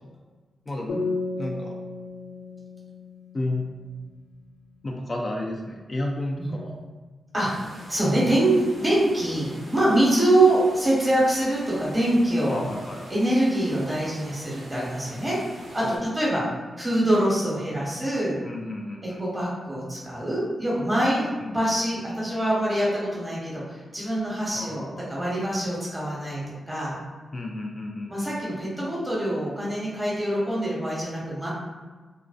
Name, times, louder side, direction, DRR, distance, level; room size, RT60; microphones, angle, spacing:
voice 1, 0.7-1.0 1.4-1.8 3.3-3.7 4.8-6.8 12.5-13.0 15.8-16.0 18.4-19.2 21.4-21.8 24.5-25.1 27.3-28.6, left 1 dB, 45° left, -1 dB, 0.3 m, -32 dB
sound 1, 0.9-4.4, left 3 dB, 90° left, 0.6 m, -34 dB
voice 2, 7.3-12.6 13.1-15.4 15.7-16.4 16.8-18.4 19.0-26.4 26.7-27.0 28.1-31.5, right 1 dB, 20° right, -6 dB, 1.1 m, -24 dB
sound 2, 7.4-16.0, right 1 dB, 70° right, 0.7 m, -45 dB
2.5 x 2.2 x 2.3 m, 1.4 s
cardioid pair, 60°, 0 cm